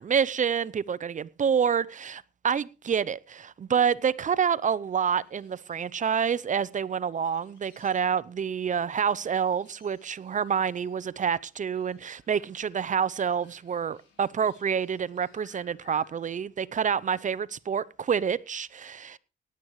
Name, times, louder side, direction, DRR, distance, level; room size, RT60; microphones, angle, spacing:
voice 1, 0.0-19.2, right 7 dB, 40° right, 0.7 m, -28 dB
sound 1, 4.8-16.3, left 6 dB, 75° left, 4.8 m, -63 dB
18.0 x 11.0 x 3.2 m
cardioid pair, 90°, 20 cm